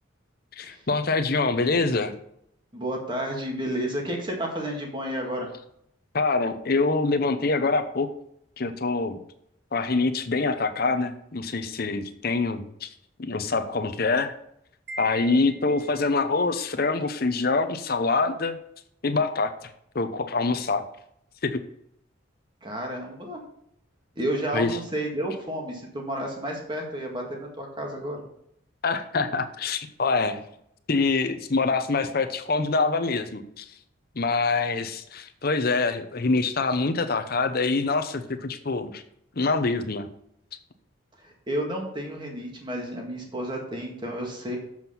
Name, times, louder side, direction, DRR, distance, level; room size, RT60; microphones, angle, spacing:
voice 1, 0.5-2.1 6.1-8.1 8.6-9.2 9.7-12.9 13.2-14.3 15.0-18.6 19.0-20.8 21.4-21.6 24.5-24.8 28.8-30.4 30.9-33.7 34.2-39.0 39.4-40.1, left 3 dB, 45° left, 9 dB, 0.7 m, -25 dB
voice 2, 2.7-5.5 22.6-23.4 24.2-28.2 41.2-44.6, right 1 dB, 20° right, 1 dB, 1.7 m, -31 dB
Wind chime, 14.9-16.3, right 2 dB, 50° right, 1.0 m, -40 dB
7.4 x 6.1 x 5.7 m, 0.73 s
head